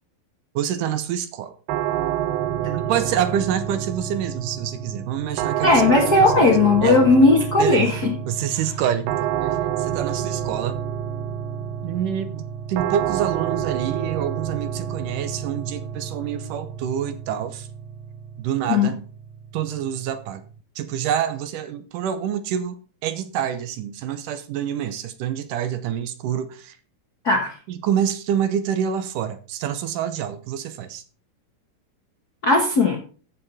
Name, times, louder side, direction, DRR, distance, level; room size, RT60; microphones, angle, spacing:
voice 1, 0.6-1.5 2.6-5.8 6.2-6.5 6.8-7.0 7.6-7.9 8.3-10.8 11.8-17.7 18.4-19.0 19.5-20.4 20.8-22.8 23.0-26.8 27.7-31.0, right 9 dB, 75° right, 11 dB, 2.2 m, -27 dB
sound 1, 1.7-20.6, right 10 dB, 90° right, 2.5 m, -29 dB
voice 2, 5.6-8.1 18.7-18.9 27.2-27.5 32.4-33.0, left 3 dB, 55° left, 0 dB, 1.1 m, -17 dB
14.0 x 5.6 x 4.2 m, 0.39 s
omnidirectional pair, 4.0 m